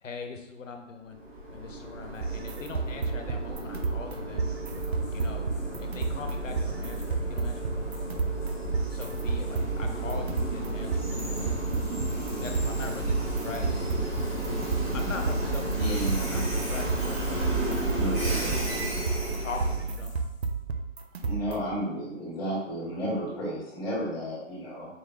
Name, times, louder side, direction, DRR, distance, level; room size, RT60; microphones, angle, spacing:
voice 1, 0.0-1.2 1.5-4.5 5.1-5.5 5.8-8.6 8.9-11.4 12.1-13.2 13.4-13.9 14.9-17.6 18.0-18.9 19.2-20.1, left 4 dB, 80° left, 5 dB, 0.8 m, -41 dB
Train, 1.1-19.9, right 1 dB, 20° right, 1.4 m, -33 dB
sound 1, 2.2-21.8, right 4 dB, 55° right, 0.5 m, -32 dB
sound 2, 4.8-21.8, right 3 dB, 50° left, 1.0 m, -38 dB
voice 2, 15.7-16.5 18.0-18.7 21.2-24.9, equal, 15° left, -7 dB, 1.5 m, -33 dB
4.5 x 3.5 x 2.3 m, 0.90 s
hypercardioid pair, 155°, 38 cm